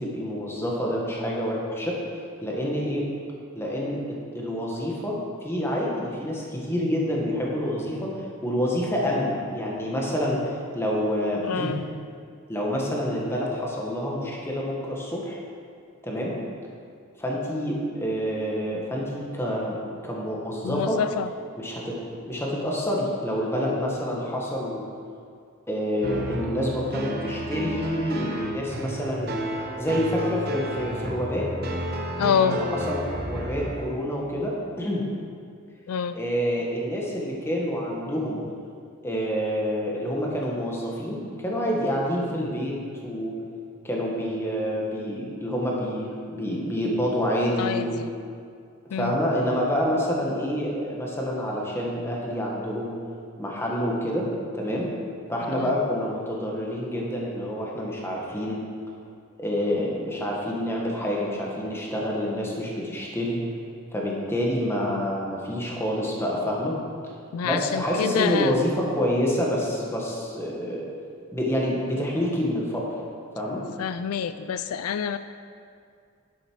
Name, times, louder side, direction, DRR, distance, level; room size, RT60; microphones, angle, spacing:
voice 1, 0.0-2.0 2.4-3.0 3.5-5.2 5.4-8.1 8.4-11.7 12.5-15.4 16.0-16.4 17.2-19.8 20.0-21.0 21.6-21.9 22.2-24.8 25.7-29.4 29.8-31.5 32.4-35.0 36.1-38.4 39.0-42.7 43.0-43.4 43.8-48.0 48.9-52.9 53.4-54.9 55.3-58.6 59.4-63.4 63.9-66.8 67.4-70.8 71.3-72.9 73.3-73.6, equal, 10° left, -3 dB, 1.6 m, -27 dB
voice 2, 11.4-11.9 20.6-21.3 32.2-32.6 35.9-36.2 47.6-48.1 48.9-49.2 55.5-55.7 67.3-68.6 73.8-75.2, left 7 dB, 80° left, 11 dB, 0.4 m, -27 dB
sound 1, 26.0-33.9, right 1 dB, 45° right, 1.0 m, -31 dB
10.5 x 8.2 x 4.7 m, 2.3 s
head